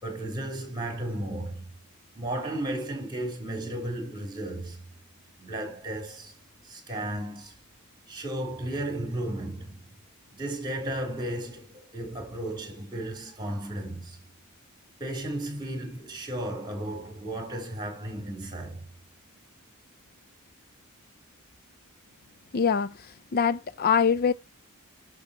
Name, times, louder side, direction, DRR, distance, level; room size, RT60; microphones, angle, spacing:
voice 1, 0.0-1.6 2.1-4.8 5.4-6.3 6.6-7.5 8.1-9.9 10.3-14.2 15.0-18.9, right 1 dB, 20° right, 4.4 m, -34 dB
voice 2, 22.5-24.3, left 6 dB, 45° left, 0.4 m, -24 dB
11.5 x 6.1 x 2.9 m
head